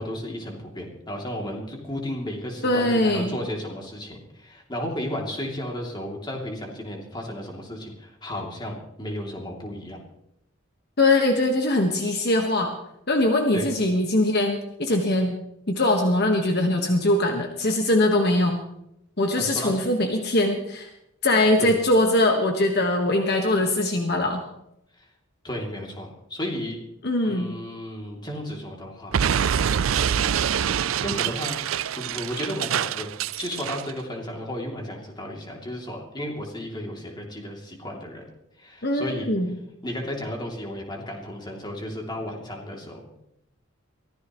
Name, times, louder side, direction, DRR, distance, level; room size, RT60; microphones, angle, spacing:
voice 1, 0.0-10.0 13.5-13.7 19.4-19.8 21.6-21.7 25.0-25.1 25.4-26.8 27.2-29.2 30.0-30.7 31.0-31.7 32.0-33.1 33.4-38.3 38.6-39.3 39.8-43.2, left 1 dB, 20° left, 0 dB, 2.9 m, -33 dB
voice 2, 2.6-3.3 11.0-12.7 13.1-15.4 15.7-18.6 19.2-20.9 21.2-24.4 27.0-27.5 38.8-39.5, left 1 dB, 55° left, 3 dB, 1.5 m, -22 dB
Explosion, 29.1-33.9, right 8 dB, 90° right, 0.5 m, -25 dB
23.5 x 15.0 x 3.1 m, 0.81 s
head